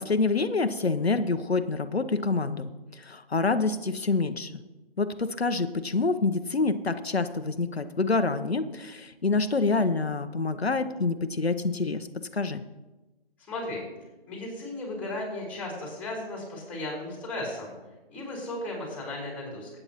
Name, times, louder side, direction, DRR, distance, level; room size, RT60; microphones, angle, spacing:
voice 1, 0.0-4.5 5.0-12.1 12.3-12.6, left 3 dB, 90° left, 9 dB, 0.8 m, -27 dB
voice 2, 13.4-13.8 14.3-17.7 18.1-19.7, left 1 dB, 5° left, -4 dB, 3.9 m, -35 dB
20.5 x 8.8 x 3.0 m, 1.1 s
figure-of-eight pair, 150°, 30 cm